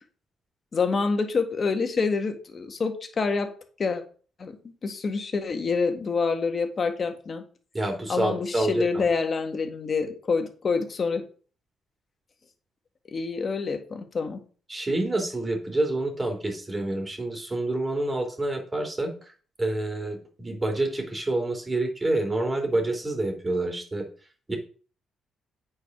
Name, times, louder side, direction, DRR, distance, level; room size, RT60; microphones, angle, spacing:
voice 1, 0.7-3.5 3.8-4.0 4.4-7.4 8.1-11.2 13.1-14.4, left 4 dB, 40° left, 6 dB, 1.7 m, -27 dB
voice 2, 7.7-9.1 14.7-19.1 19.6-24.1 24.5-24.6, right 2 dB, 20° right, 3 dB, 3.0 m, -28 dB
8.5 x 4.8 x 5.9 m, 0.39 s
cardioid pair, 90°, 0 cm